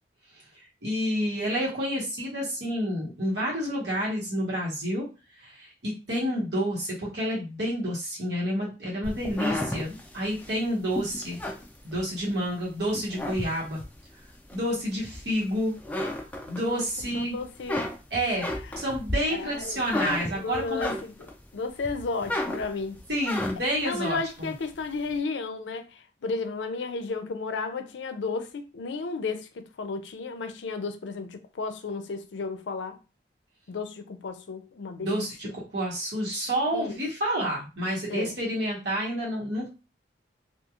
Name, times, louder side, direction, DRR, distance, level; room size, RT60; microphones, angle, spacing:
voice 1, 0.8-5.1 5.4-11.4 11.8-13.8 14.5-15.8 16.5-17.4 18.1-18.5 18.8-20.9 23.1-24.5 35.0-35.5 35.7-39.7, equal, 70° right, 1.2 m, -29 dB
sound 1, 9.0-12.5 12.9-14.0 14.5-15.5 15.8-17.0 17.4-21.4 21.8-23.8, left 1 dB, 10° left, 0.3 m, -33 dB
voice 2, 16.6-16.9 17.1-17.8 19.3-19.9 20.2-23.0 23.8-33.0 33.7-35.5 36.7-37.0 38.1-38.4, left 4 dB, 85° left, 0.4 m, -33 dB
2.9 x 2.4 x 2.4 m
head